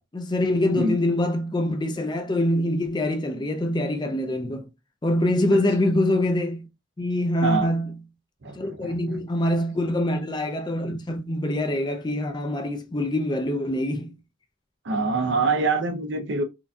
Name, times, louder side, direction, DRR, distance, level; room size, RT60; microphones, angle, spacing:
voice 1, 0.1-4.7 5.0-6.7 7.0-7.9 8.5-14.2, left 1 dB, 20° left, 0.4 m, -24 dB
voice 2, 7.4-7.7 8.4-9.2 14.8-16.4, right 3 dB, 60° right, 0.6 m, -25 dB
4.4 x 2.6 x 2.3 m
head